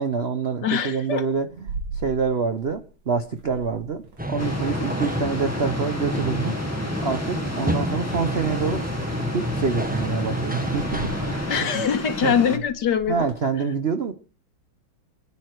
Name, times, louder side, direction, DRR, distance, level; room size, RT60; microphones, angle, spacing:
voice 1, 0.0-6.6 7.0-8.9 9.3-11.8 12.2-12.4 13.1-14.1, right 5 dB, 50° right, 9 dB, 0.7 m, -26 dB
voice 2, 0.6-1.2 11.5-13.3, left 7 dB, 60° left, 9 dB, 1.7 m, -23 dB
sound 1, 0.9-2.9 3.2-5.5 5.8-7.4 8.5-8.9 9.3-13.5, right 3 dB, 80° right, 3.4 m, -40 dB
sound 2, 4.2-11.6, equal, 10° right, 0.6 m, -28 dB
sound 3, 4.4-12.6, left 2 dB, 10° left, 1.4 m, -33 dB
27.5 x 9.9 x 4.6 m, 0.37 s
omnidirectional pair, 2.3 m